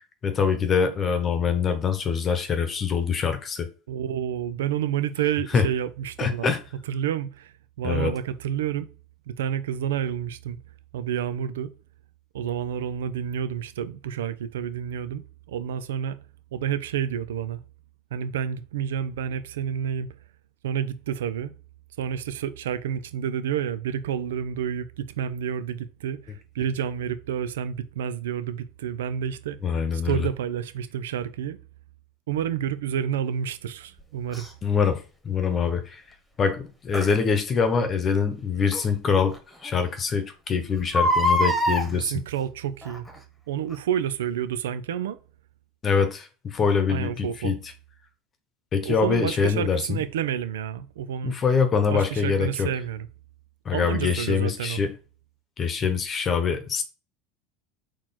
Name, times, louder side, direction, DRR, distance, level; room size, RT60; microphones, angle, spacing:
voice 1, 0.2-3.7 5.5-5.7 6.2-6.6 7.8-8.1 29.6-30.3 34.6-36.0 36.4-39.4 39.6-42.1 45.8-47.5 48.7-50.0 51.2-52.7 53.6-54.9 55.6-56.8, left 6 dB, 35° left, 0.9 m, -24 dB
voice 2, 3.9-6.6 6.9-8.9 9.3-10.6 10.9-11.7 12.3-16.2 16.5-17.6 18.1-20.1 20.6-21.5 22.0-31.6 32.3-34.5 41.9-43.1 43.5-45.2 46.9-47.5 48.8-51.3 51.9-53.1 53.7-54.8, right 9 dB, 80° right, 0.4 m, -29 dB
Crying sobbing, 34.3-34.5 36.9-37.1 38.7-38.8 39.3-39.4 39.7-39.8 40.8-41.9 42.8-43.2 43.7-43.8, equal, 5° left, 1.2 m, -23 dB
4.2 x 3.0 x 4.0 m
hypercardioid pair, 85°, 0 cm